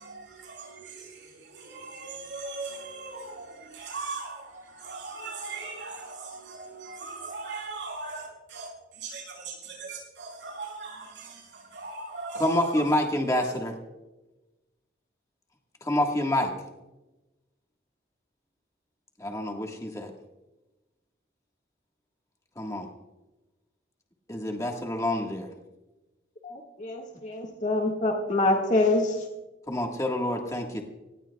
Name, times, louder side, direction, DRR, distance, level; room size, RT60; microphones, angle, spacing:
voice 1, 0.0-12.9 13.4-13.6, right 3 dB, 80° right, 6.6 m, -39 dB
voice 2, 12.4-13.8 15.8-16.5 19.2-20.1 22.6-22.9 24.3-25.5 29.7-30.9, left 1 dB, 15° left, 1.5 m, -27 dB
voice 3, 26.4-29.3, left 2 dB, 40° left, 1.8 m, -26 dB
25.5 x 18.0 x 2.3 m
head